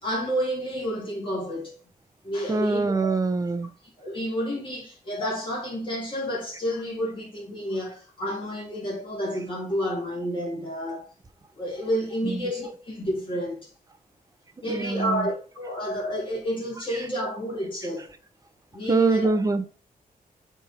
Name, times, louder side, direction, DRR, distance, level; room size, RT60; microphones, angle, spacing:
voice 1, 0.0-1.8 2.2-3.1 4.0-11.1 11.5-13.7 14.6-18.1 18.7-19.3, equal, 35° left, 2.7 m, -30 dB
voice 2, 2.5-3.7 12.2-12.4 14.7-15.3 18.9-19.6, right 4 dB, 25° right, 0.7 m, -23 dB
7.1 x 3.5 x 4.4 m
wide cardioid pair, 135°, 15 cm